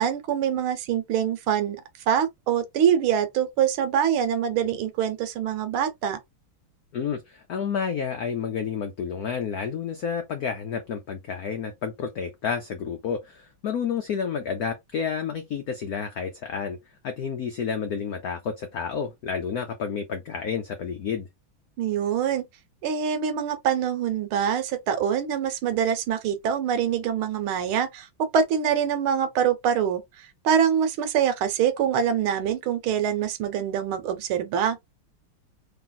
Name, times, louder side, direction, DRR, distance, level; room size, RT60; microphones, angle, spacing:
voice 1, 0.0-1.8 2.1-6.2 21.8-22.5 22.8-34.8, right 8 dB, 75° right, 1.6 m, -24 dB
voice 2, 6.9-16.8 17.0-21.3, left 6 dB, 85° left, 0.8 m, -30 dB
3.4 x 2.8 x 3.9 m
omnidirectional pair, 2.4 m